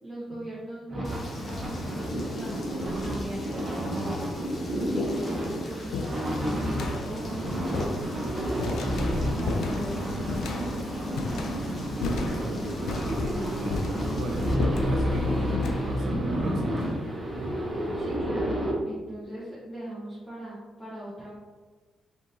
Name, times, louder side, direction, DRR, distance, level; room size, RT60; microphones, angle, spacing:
voice 1, 0.0-4.3 4.7-11.5 18.0-18.6 18.8-21.3, right 1 dB, 10° left, -10 dB, 0.9 m, -40 dB
sound 1, 0.9-18.7, equal, 20° right, 1.0 m, -30 dB
Rain, 1.0-14.5, left 2 dB, 35° left, 0.7 m, -46 dB
sound 2, 1.2-1.6 2.5-2.6 3.5-3.6 4.0-17.5, left 3 dB, 90° left, 0.4 m, -36 dB
voice 2, 13.0-16.9, right 1 dB, 60° right, -1 dB, 1.0 m, -33 dB
4.2 x 3.5 x 2.7 m, 1.4 s
cardioid pair, 155°, 0 cm